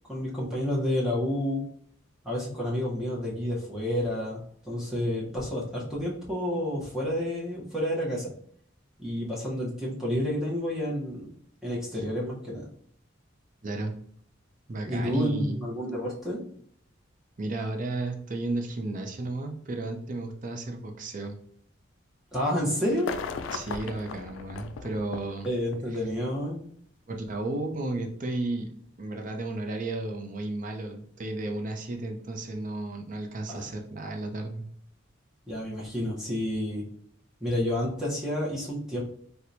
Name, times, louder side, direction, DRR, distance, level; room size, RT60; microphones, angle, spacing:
voice 1, 0.1-1.6 2.2-8.3 9.0-11.3 11.6-12.7 14.9-16.4 22.3-23.1 25.4-26.6 33.5-33.7 35.5-36.8 37.4-39.0, left 1 dB, 5° right, -6 dB, 0.7 m, -30 dB
voice 2, 13.6-13.9 14.7-15.6 17.4-21.4 23.5-25.5 27.1-28.7 29.0-34.7, right 2 dB, 40° right, 3 dB, 0.5 m, -33 dB
sound 1, 22.9-26.0 27.1-27.2, left 5 dB, 85° left, 0.3 m, -37 dB
4.4 x 2.2 x 2.6 m, 0.63 s
head